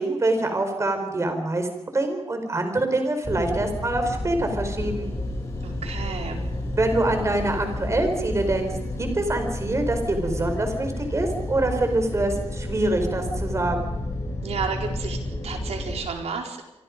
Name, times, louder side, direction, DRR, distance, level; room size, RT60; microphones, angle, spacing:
voice 1, 0.0-1.7 1.9-5.1 6.8-13.9, right 2 dB, 25° right, 6 dB, 4.7 m, -25 dB
sound 1, 3.2-16.0, left 1 dB, 30° left, 7.4 m, -31 dB
voice 2, 5.6-6.4 14.4-16.6, right 5 dB, 80° right, 2 dB, 4.5 m, -32 dB
27.5 x 24.0 x 5.3 m, 0.92 s
wide cardioid pair, 155°, 11 cm